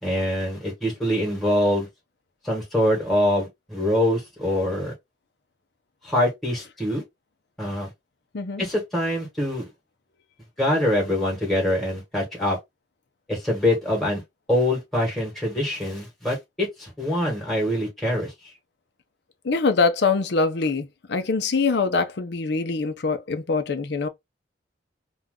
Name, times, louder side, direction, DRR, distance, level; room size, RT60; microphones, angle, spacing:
voice 1, 0.0-1.9 2.4-4.9 6.0-7.0 7.6-7.9 8.6-9.7 10.6-12.6 13.3-14.2 14.5-18.3, left 1 dB, ahead, 1.2 m, -24 dB
voice 2, 19.4-24.1, left 4 dB, 60° left, 0.6 m, -23 dB
2.5 x 2.3 x 3.5 m
head